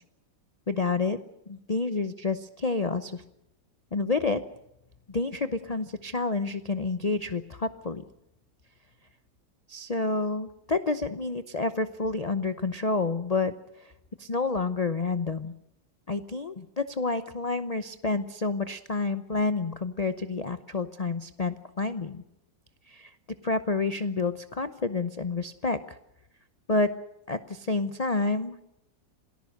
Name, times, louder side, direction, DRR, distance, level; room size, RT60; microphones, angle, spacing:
voice 1, 0.7-1.2 1.5-3.2 3.9-4.4 5.1-8.0 9.7-13.5 13.8-13.9 14.2-15.5 16.1-22.2 22.9-23.1 23.4-26.0 26.7-26.9 27.3-28.6, left 3 dB, 45° left, 11 dB, 0.5 m, -29 dB
27.5 x 19.0 x 6.5 m, 0.85 s
omnidirectional pair, 2.0 m